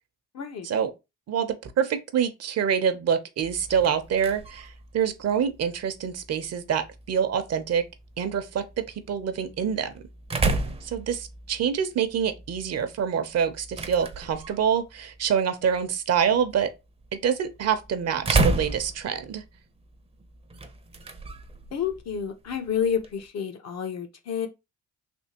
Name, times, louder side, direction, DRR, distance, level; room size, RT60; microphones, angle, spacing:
voice 1, 0.3-0.7 21.7-24.5, left 8 dB, 60° left, 0.8 m, -29 dB
voice 2, 1.3-7.8 8.2-10.0 10.8-16.7 17.1-19.4, right 7 dB, 55° right, 0.7 m, -26 dB
sound 1, 3.4-23.3, right 3 dB, 20° right, 0.6 m, -34 dB
3.5 x 2.8 x 2.8 m
cardioid pair, 90°, 30 cm